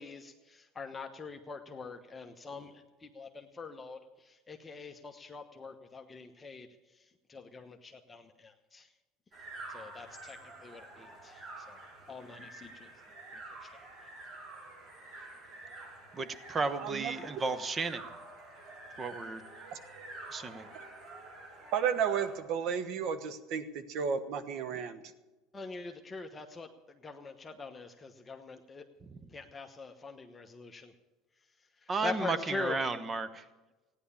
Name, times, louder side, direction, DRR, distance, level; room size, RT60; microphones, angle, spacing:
voice 1, 0.0-4.0 4.2-6.7 7.3-8.9 9.7-11.8 12.1-12.9 13.6-13.7 25.5-26.7 27.0-28.8 29.3-30.9 32.0-32.8, left 4 dB, 20° left, 4 dB, 1.1 m, -43 dB
sound 1, 9.3-22.4, right 2 dB, 40° right, 6.9 m, -48 dB
voice 2, 16.1-18.0 19.0-19.4 20.3-20.7 29.0-29.3 31.9-33.4, right 4 dB, 25° right, 13 dB, 1.1 m, -34 dB
voice 3, 16.8-17.1 19.7-19.8 21.7-25.0, right 7 dB, 60° right, 13 dB, 1.3 m, -33 dB
15.5 x 10.0 x 7.1 m, 1.2 s
supercardioid pair, 105°, 0 cm